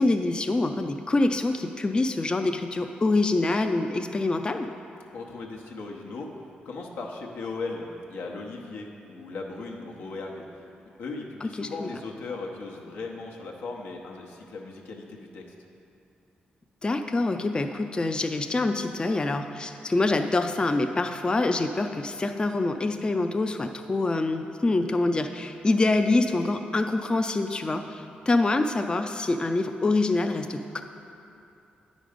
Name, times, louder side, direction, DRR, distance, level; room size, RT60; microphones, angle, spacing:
voice 1, 0.0-4.7 11.4-11.9 16.8-30.8, left 2 dB, 25° left, 6 dB, 0.4 m, -25 dB
voice 2, 5.1-6.3 6.6-10.6 11.0-15.4, left 3 dB, 85° left, 0 dB, 0.9 m, -37 dB
9.3 x 5.2 x 5.1 m, 2.7 s
cardioid pair, 65°, 3 cm